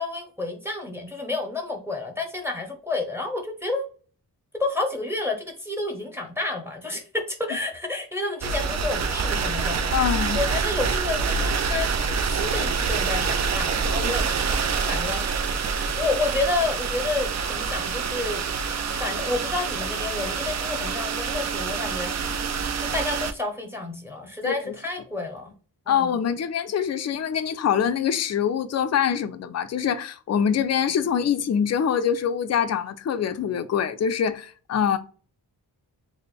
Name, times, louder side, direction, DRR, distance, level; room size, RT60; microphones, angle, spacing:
voice 1, 0.0-3.8 4.6-7.0 7.4-10.0 10.3-14.2 14.5-15.2 16.0-18.4 19.0-22.1 22.9-25.5 25.9-26.2, left 3 dB, 5° right, 0.8 m, -30 dB
sound 1, 8.4-23.3, right 5 dB, 45° right, 0.4 m, -26 dB
voice 2, 9.9-10.4 14.0-14.1 24.4-24.8 25.9-35.0, left 8 dB, 45° left, 0.4 m, -24 dB
3.4 x 2.1 x 4.0 m
wide cardioid pair, 90°, 40 cm